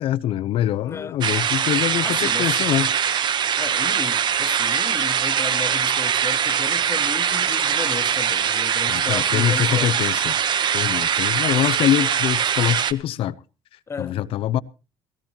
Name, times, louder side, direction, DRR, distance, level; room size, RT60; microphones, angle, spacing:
voice 1, 0.0-2.9 8.9-10.4 10.7-13.4 14.0-14.6, left 12 dB, 65° left, 0.7 m, -24 dB
voice 2, 0.9-1.2 2.0-2.6 3.6-10.0 13.9-14.2, left 5 dB, 25° left, 0.6 m, -34 dB
sound 1, 1.2-12.9, right 8 dB, 45° right, 0.9 m, -22 dB
18.5 x 16.5 x 2.9 m
cardioid pair, 105°, 10 cm